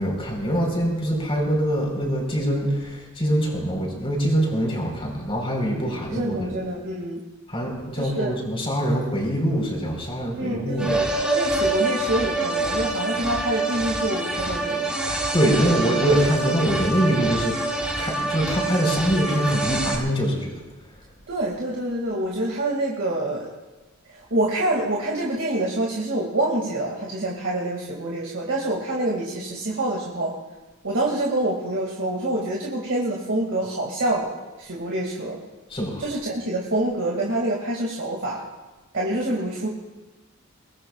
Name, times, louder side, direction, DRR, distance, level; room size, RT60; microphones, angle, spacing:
voice 1, 0.0-6.5 7.5-10.9 15.3-20.6 35.7-36.0, equal, 25° left, 0 dB, 4.3 m, -24 dB
voice 2, 5.9-7.2 8.0-8.4 10.4-15.0 21.3-23.5 24.1-30.3 30.8-34.3 34.6-35.4 36.0-38.4 38.9-39.7, right 1 dB, 60° right, -3 dB, 2.2 m, -26 dB
sound 1, 10.8-20.0, right 2 dB, 5° right, 1.7 m, -26 dB
23.5 x 20.0 x 2.4 m, 1.2 s
head